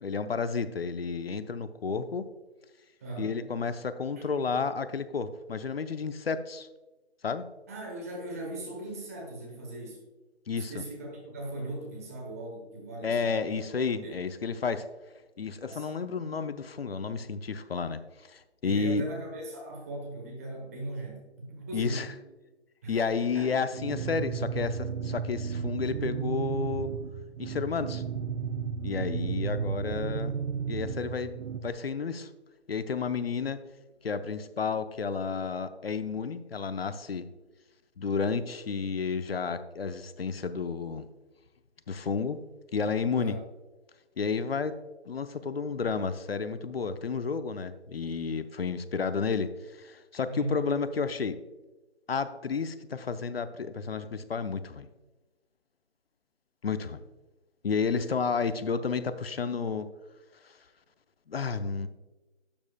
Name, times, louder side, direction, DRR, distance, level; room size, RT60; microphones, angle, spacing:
voice 1, 0.0-2.3 3.2-6.7 7.2-7.4 10.5-10.8 13.0-14.9 15.4-18.0 18.3-19.0 21.7-22.1 22.9-26.9 27.4-28.0 28.8-30.3 30.7-32.3 32.7-33.6 34.0-37.3 38.0-41.1 41.9-42.4 42.7-43.4 44.2-44.8 45.1-51.4 52.1-54.9 56.6-57.0 57.6-59.9 60.4-60.5 61.3-61.9, left 5 dB, 60° left, 12 dB, 0.7 m, -31 dB
voice 2, 3.0-3.4 4.2-4.3 7.7-10.0 10.5-13.6 14.0-14.2 15.6-15.9 18.6-22.1 22.8-23.5 29.5-29.6 43.1-43.4 50.3-50.7, right 1 dB, 15° right, -1 dB, 1.0 m, -39 dB
sound 1, 23.7-31.7, right 6 dB, 85° right, 0.5 m, -33 dB
12.0 x 7.3 x 2.3 m, 1.1 s
figure-of-eight pair, 160°, 34 cm